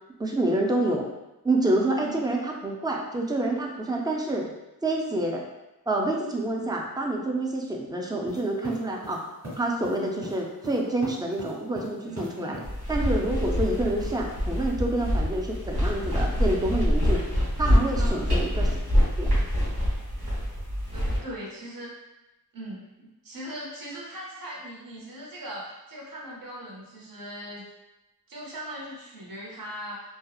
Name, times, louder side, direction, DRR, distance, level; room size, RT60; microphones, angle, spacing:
voice 1, 0.2-1.1 1.4-4.5 4.8-5.4 5.9-9.2 9.6-12.6 12.9-17.2 17.6-18.7 19.2-19.4, right 2 dB, 10° right, 0 dB, 0.3 m, -27 dB
sound 1, 8.3-12.7 13.6-14.4, equal, 45° right, 1.2 m, -41 dB
voice 2, 12.0-12.7 18.0-18.3 20.9-21.9 22.5-27.7 28.3-30.0, equal, 65° right, -3 dB, 0.7 m, -39 dB
sound 2, 12.6-21.2, equal, 85° right, 1.1 m, -25 dB
2.7 x 2.0 x 2.2 m, 0.99 s
wide cardioid pair, 80°, 37 cm